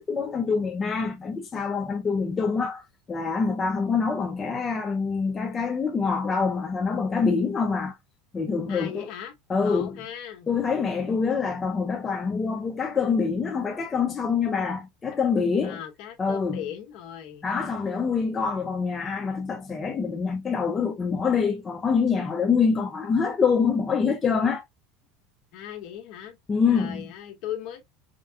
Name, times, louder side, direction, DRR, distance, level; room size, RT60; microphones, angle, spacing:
voice 1, 0.0-2.8 3.1-8.0 8.3-9.1 9.5-10.0 10.5-15.8 16.2-16.6 17.4-24.6 26.5-27.1, left 5 dB, 20° left, 0.7 m, -25 dB
voice 2, 8.7-10.5 15.6-17.5 25.5-26.4 26.7-27.8, left 10 dB, 55° left, 1.4 m, -38 dB
5.1 x 2.2 x 2.6 m
supercardioid pair, 140°, 0 cm